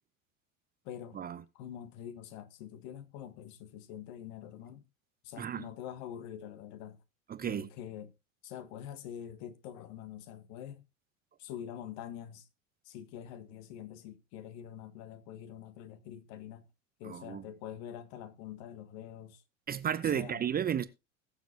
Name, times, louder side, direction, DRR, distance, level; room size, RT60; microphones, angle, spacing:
voice 1, 0.8-1.2 1.5-4.8 5.2-7.0 7.4-8.1 8.4-10.8 11.4-12.5 12.8-16.7 17.0-19.4 20.0-20.4, left 10 dB, 50° left, 1.6 m, -45 dB
voice 2, 5.4-5.7 7.3-7.7 17.0-17.4 19.7-20.9, right 9 dB, 20° right, 0.8 m, -33 dB
21.0 x 7.2 x 2.9 m
figure-of-eight pair, 75°, 41 cm